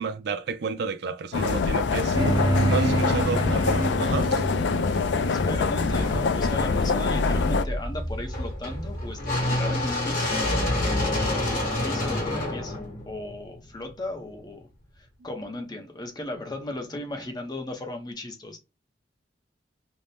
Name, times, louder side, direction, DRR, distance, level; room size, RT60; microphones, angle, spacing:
voice 1, 0.0-2.2 2.7-4.5, right 5 dB, 65° right, 0.4 m, -31 dB
sound 1, 1.3-7.6, left 4 dB, 75° left, 0.4 m, -25 dB
sound 2, 2.1-6.9, right 1 dB, 25° right, 0.8 m, -28 dB
voice 2, 5.3-10.4 10.9-14.7 15.0-18.6, left 1 dB, 25° left, 0.6 m, -36 dB
sound 3, 5.9-13.9, left 1 dB, 50° left, 1.1 m, -28 dB
2.6 x 2.1 x 3.2 m
head